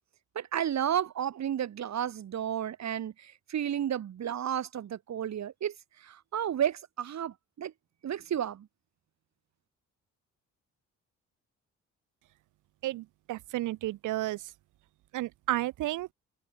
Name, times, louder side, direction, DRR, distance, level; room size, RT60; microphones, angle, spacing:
voice 1, 0.4-5.7 6.0-7.7 8.0-8.7, right 10 dB, 65° right, 5.8 m, -32 dB
voice 2, 12.8-14.4 15.1-16.1, right 16 dB, 90° right, 2.1 m, -32 dB
cardioid pair, 90°, 30 cm